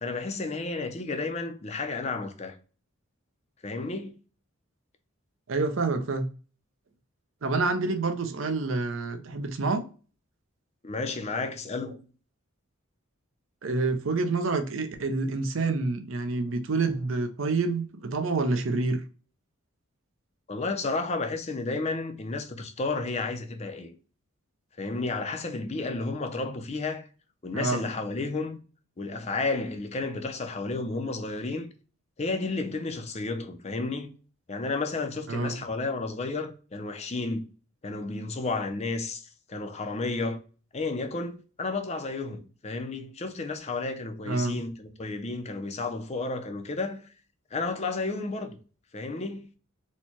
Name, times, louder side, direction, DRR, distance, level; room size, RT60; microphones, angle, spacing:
voice 1, 0.0-2.5 3.6-4.2 10.8-12.0 20.5-23.9 24.8-27.1 27.4-28.6 29.0-31.7 32.2-34.1 34.5-37.5 37.8-40.4 40.7-47.0 47.5-48.6 48.9-49.5, left 3 dB, 30° left, 0.5 m, -32 dB
voice 2, 5.5-6.3 7.4-9.8 13.6-19.0 27.5-27.8 35.3-35.6 44.3-44.6, right 3 dB, 60° right, 0.6 m, -27 dB
4.3 x 2.2 x 2.9 m
head